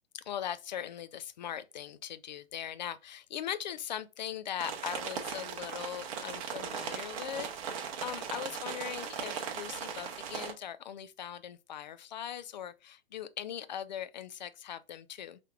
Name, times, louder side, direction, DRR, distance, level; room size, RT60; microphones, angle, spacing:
voice 1, 0.1-15.4, left 10 dB, 50° left, 0.5 m, -40 dB
sound 1, 4.6-10.5, right 7 dB, 35° right, 0.8 m, -38 dB
5.4 x 3.4 x 2.4 m
figure-of-eight pair, 115°, 30 cm